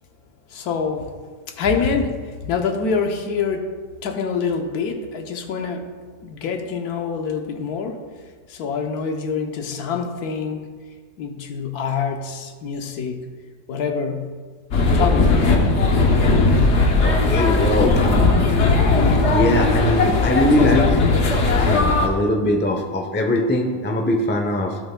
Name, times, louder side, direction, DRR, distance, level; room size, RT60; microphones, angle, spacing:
voice 1, 0.5-1.1 1.6-3.7 4.0-5.9 6.2-8.0 8.5-10.6 11.2-13.2 13.7-14.3 14.9-15.6, left 5 dB, 80° left, 4 dB, 1.3 m, -25 dB
sound 1, 14.7-22.1, left 3 dB, 55° left, 1.0 m, -17 dB
voice 2, 17.0-18.6 19.3-21.0 21.5-24.8, left 1 dB, 15° left, 2 dB, 0.3 m, -21 dB
15.5 x 5.6 x 2.2 m, 1.6 s
omnidirectional pair, 1.6 m